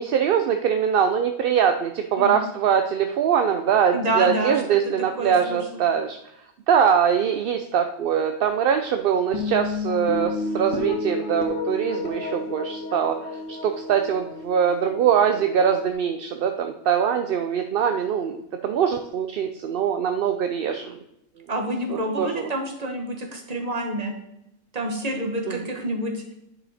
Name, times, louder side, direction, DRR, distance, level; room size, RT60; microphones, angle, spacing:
voice 1, 0.0-6.2 6.7-21.0 21.9-22.5 25.5-25.6, right 8 dB, 60° right, 7 dB, 0.6 m, -23 dB
voice 2, 3.9-4.8 5.2-5.9 21.5-24.1 24.7-26.2, right 1 dB, 35° right, 2 dB, 1.4 m, -28 dB
sound 1, 9.3-15.9, left 4 dB, 75° left, 1.4 m, -31 dB
9.7 x 5.6 x 4.1 m, 0.82 s
omnidirectional pair, 1.3 m